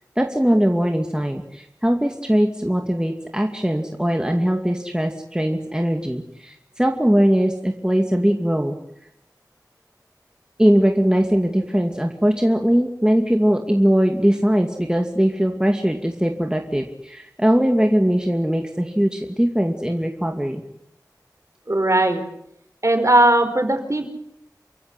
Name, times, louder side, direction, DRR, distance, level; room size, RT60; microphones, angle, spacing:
voice 1, 0.2-8.7 10.6-20.6, equal, 10° right, 3 dB, 2.4 m, -20 dB
voice 2, 21.7-22.2 22.8-24.1, right 1 dB, 45° right, 7 dB, 4.7 m, -18 dB
28.5 x 15.5 x 9.8 m, 0.78 s
wide cardioid pair, 45°, 7 cm